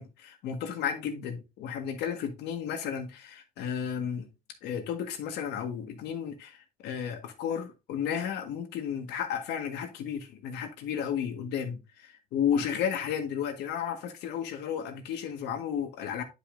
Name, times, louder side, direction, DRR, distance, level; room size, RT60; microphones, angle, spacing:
voice 1, 0.0-4.3 4.6-6.6 6.8-16.2, left 8 dB, 85° left, 1.7 m, -33 dB
9.8 x 5.5 x 2.6 m
cardioid pair, 110°, 17 cm